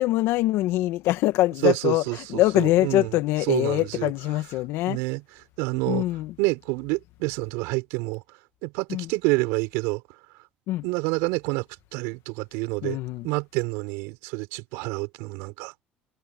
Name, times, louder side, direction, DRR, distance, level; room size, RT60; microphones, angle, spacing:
voice 1, 0.0-5.0 5.9-6.3 8.9-9.1 10.7-10.8 12.8-13.3, left 16 dB, 75° left, 1.6 m, -24 dB
voice 2, 1.6-3.1 3.5-4.1 4.9-5.2 5.6-6.0 6.4-8.2 8.6-10.0 10.8-11.6 11.9-13.0 13.2-15.7, right 26 dB, 80° right, 6.6 m, -27 dB
supercardioid pair, 90°, 4 cm